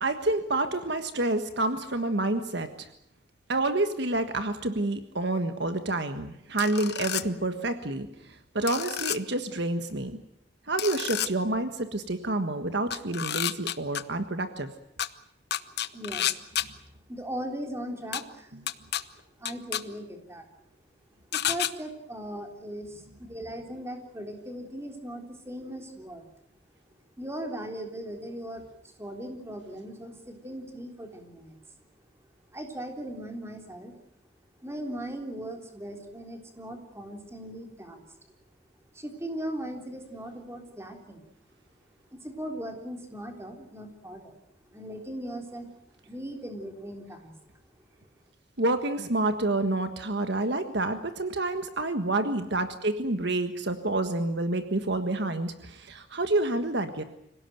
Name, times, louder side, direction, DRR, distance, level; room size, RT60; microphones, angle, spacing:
voice 1, 0.0-2.9 3.5-10.2 10.7-14.7 48.6-57.0, right 2 dB, 60° right, 8 dB, 1.5 m, -28 dB
sound 1, 6.6-7.2 8.7-9.2 10.8-11.3 12.9-14.0 15.0-15.1 15.5-16.7 18.1-18.2 18.7-19.0 19.5-19.8 21.3-21.7, left 11 dB, 55° left, 1.0 m, -29 dB
voice 2, 15.9-16.4 17.1-18.6 19.4-20.5 21.3-26.3 27.2-31.7 32.5-33.9 34.6-38.3 38.9-41.3 42.1-44.3 44.7-45.7 46.1-47.5, right 1 dB, 15° right, 3 dB, 3.6 m, -38 dB
26.0 x 17.5 x 9.2 m, 0.76 s
head